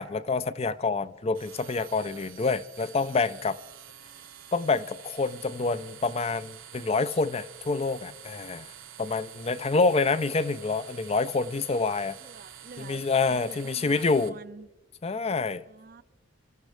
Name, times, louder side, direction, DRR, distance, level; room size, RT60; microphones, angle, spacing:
voice 1, 0.0-3.6 4.5-8.7 9.0-12.2 12.8-14.4 15.0-15.6, left 4 dB, 30° left, 0.4 m, -27 dB
sound 1, 1.3-14.3, right 10 dB, 85° right, 1.2 m, -48 dB
voice 2, 12.2-13.0 13.3-14.7 15.7-16.0, right 4 dB, 45° right, 0.5 m, -47 dB
28.5 x 13.5 x 3.3 m
head